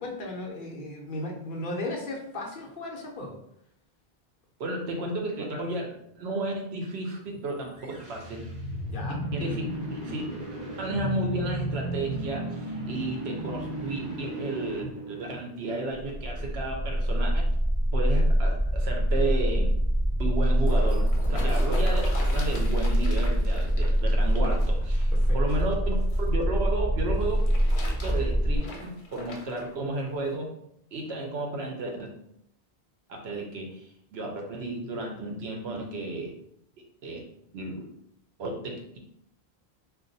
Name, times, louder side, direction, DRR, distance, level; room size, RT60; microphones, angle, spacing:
voice 1, 0.0-3.4 8.9-9.2 21.3-21.6 25.1-25.4, left 1 dB, 55° left, -1 dB, 0.8 m, -36 dB
voice 2, 4.6-8.4 9.3-10.2 10.8-17.5 17.9-19.7 20.2-22.0 22.3-26.0 26.3-27.4 28.0-30.5 30.9-32.1 33.1-36.3 37.0-37.2 37.5-37.9 38.4-39.0, right 2 dB, 80° right, 1 dB, 1.0 m, -33 dB
sound 1, 7.7-15.8, right 1 dB, 40° right, 1.2 m, -34 dB
sound 2, 16.0-28.6, equal, 10° right, 0.6 m, -24 dB
sound 3, 20.2-26.3 27.1-29.7 30.3-30.4, left 2 dB, 80° left, 1.0 m, -41 dB
2.5 x 2.3 x 3.8 m, 0.74 s
omnidirectional pair, 1.1 m